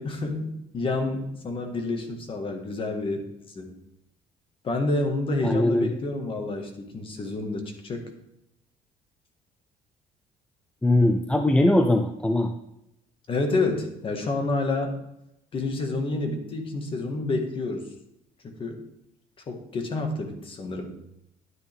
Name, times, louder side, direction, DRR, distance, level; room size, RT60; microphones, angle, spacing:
voice 1, 0.0-3.3 3.5-3.7 4.6-8.0 13.3-15.0 15.5-17.9 18.4-18.8 19.5-20.9, left 2 dB, 35° left, 5 dB, 1.8 m, -29 dB
voice 2, 5.4-5.9 10.8-12.5, left 1 dB, 5° left, 5 dB, 0.6 m, -21 dB
11.0 x 9.3 x 3.6 m, 0.84 s
cardioid pair, 150°, 16 cm